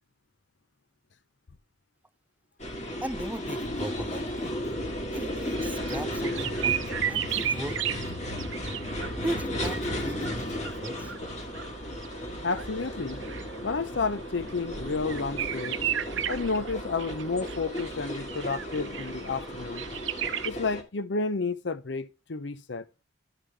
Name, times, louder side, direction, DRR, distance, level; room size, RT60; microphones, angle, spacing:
sound 1, 2.6-20.8, left 1 dB, 35° left, 1.6 m, -34 dB
voice 1, 3.0-4.5 5.1-6.8 7.1-8.0 9.2-11.1, right 1 dB, 10° right, 0.4 m, -37 dB
sound 2, 5.5-20.5, right 10 dB, 70° right, 0.6 m, -36 dB
voice 2, 12.4-13.2 13.6-15.8 16.3-19.9 20.4-22.8, left 4 dB, 60° left, 0.7 m, -31 dB
11.5 x 5.6 x 3.3 m
head